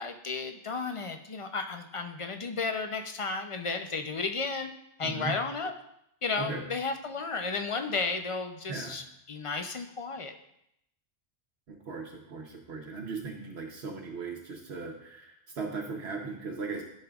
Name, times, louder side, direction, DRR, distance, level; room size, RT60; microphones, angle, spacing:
voice 1, 0.0-4.7 5.0-5.7 6.2-10.3, left 4 dB, 45° left, 5 dB, 0.4 m, -33 dB
voice 2, 11.7-16.8, right 4 dB, 70° right, 1 dB, 1.1 m, -38 dB
13.0 x 5.4 x 2.3 m, 0.77 s
omnidirectional pair, 1.1 m